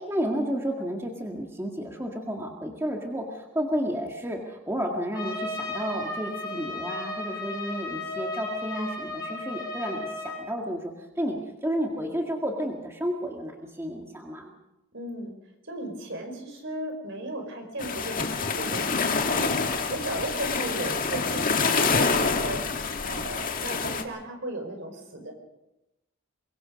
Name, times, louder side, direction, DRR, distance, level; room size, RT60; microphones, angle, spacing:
voice 1, 0.0-14.5, equal, 15° right, 1 dB, 2.0 m, -31 dB
Trumpet, 5.1-10.4, left 2 dB, 20° left, 6.3 m, -34 dB
voice 2, 14.9-15.3 15.7-25.3, right 1 dB, 60° right, 5 dB, 5.1 m, -36 dB
sound 1, 17.8-24.0, left 4 dB, 40° left, 1.8 m, -27 dB
23.5 x 23.0 x 5.3 m, 0.93 s
head